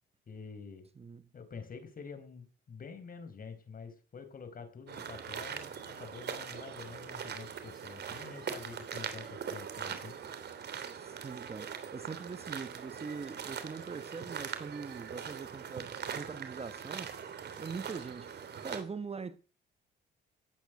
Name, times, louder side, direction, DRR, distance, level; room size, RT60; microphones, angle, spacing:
voice 1, 0.3-0.9 1.3-10.2, left 5 dB, 45° left, 4.7 m, -47 dB
sound 1, 4.9-18.8, right 7 dB, 55° right, 3.2 m, -42 dB
voice 2, 11.0-17.2 17.6-19.4, right 5 dB, 30° right, 1.2 m, -42 dB
17.5 x 9.0 x 8.1 m
cardioid pair, 90°, 20 cm